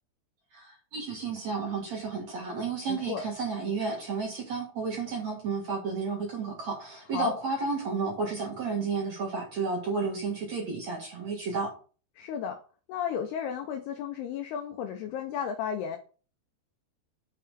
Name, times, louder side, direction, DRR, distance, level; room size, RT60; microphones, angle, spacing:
voice 1, 0.5-11.7, right 4 dB, 55° right, -1 dB, 2.1 m, -32 dB
voice 2, 2.9-3.2 7.1-7.3 12.2-12.6 12.9-16.0, left 8 dB, 85° left, 5 dB, 2.3 m, -33 dB
6.7 x 5.7 x 4.9 m, 0.37 s
omnidirectional pair, 5.4 m